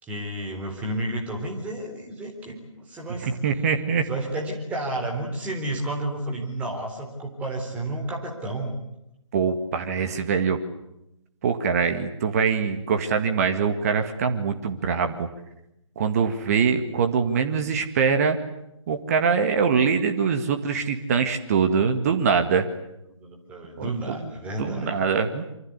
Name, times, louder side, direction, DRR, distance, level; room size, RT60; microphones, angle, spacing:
voice 1, 0.0-3.3 4.1-8.8 23.1-24.9, right 1 dB, 10° right, 0 dB, 3.8 m, -31 dB
voice 2, 3.2-4.1 9.3-10.6 11.4-15.3 16.0-18.4 18.9-22.7 23.8-24.3 24.6-25.4, right 6 dB, 30° right, 7 dB, 1.9 m, -23 dB
26.5 x 25.0 x 8.2 m, 0.86 s
figure-of-eight pair, 140°, 16 cm